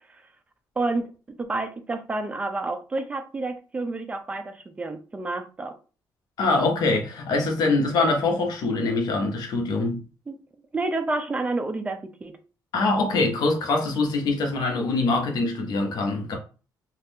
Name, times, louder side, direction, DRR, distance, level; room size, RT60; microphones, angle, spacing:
voice 1, 0.8-1.1 1.4-5.7 10.3-10.4 10.7-12.4, right 2 dB, 20° right, 0.4 m, -29 dB
voice 2, 6.4-10.0 12.7-16.4, left 3 dB, 65° left, 0.9 m, -24 dB
2.6 x 2.4 x 3.5 m
cardioid pair, 135°, 7 cm